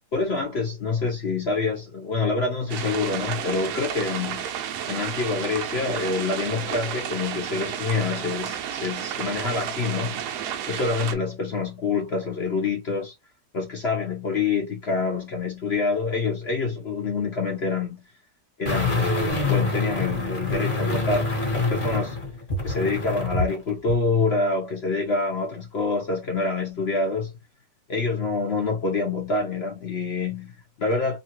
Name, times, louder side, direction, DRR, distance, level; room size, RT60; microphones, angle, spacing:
voice 1, 0.1-4.5 4.9-10.2 10.6-13.1 13.5-18.0 18.6-22.2 22.6-27.3 27.9-31.2, left 4 dB, 60° left, 0.6 m, -26 dB
sound 1, 2.7-11.1, right 9 dB, 70° right, 1.0 m, -32 dB
sound 2, 18.7-23.6 23.9-24.0, left 3 dB, 35° left, 1.1 m, -26 dB
3.0 x 2.3 x 2.8 m
omnidirectional pair, 2.0 m